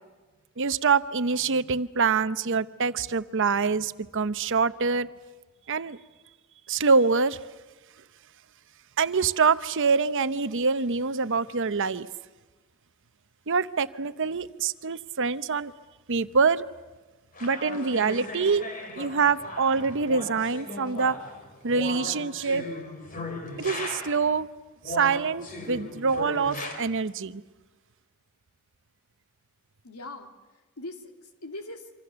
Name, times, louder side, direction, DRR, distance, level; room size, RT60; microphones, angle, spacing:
voice 1, 0.6-5.1 5.7-6.0 6.7-7.4 9.0-12.1 13.5-15.7 16.1-16.6 17.4-18.6 19.0-21.2 21.6-22.7 23.6-24.5 24.9-27.4, right 5 dB, 60° right, 13 dB, 0.8 m, -25 dB
sound 1, 17.3-24.3 24.8-26.8, left 2 dB, 40° left, 3.6 m, -37 dB
voice 2, 29.8-31.9, left 2 dB, 90° left, 5 dB, 2.7 m, -41 dB
26.5 x 25.5 x 6.9 m, 1.3 s
head